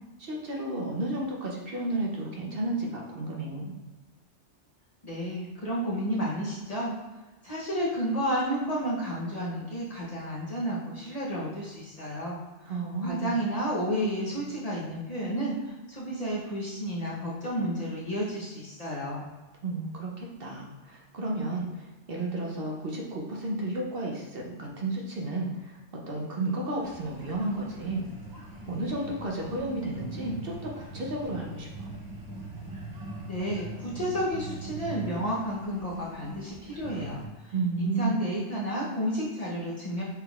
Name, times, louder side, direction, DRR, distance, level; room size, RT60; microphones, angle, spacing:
voice 1, 0.2-3.7 12.7-13.3 19.6-28.1 28.7-31.9 37.5-38.2, right 2 dB, 55° right, -2 dB, 0.9 m, -32 dB
voice 2, 5.0-6.9 7.4-12.4 12.7-19.2 33.3-40.0, equal, 35° left, -6 dB, 0.9 m, -31 dB
sound 1, 26.8-37.3, right 2 dB, 25° right, 0.6 m, -41 dB
5.7 x 3.7 x 2.4 m, 1.2 s
omnidirectional pair, 1.2 m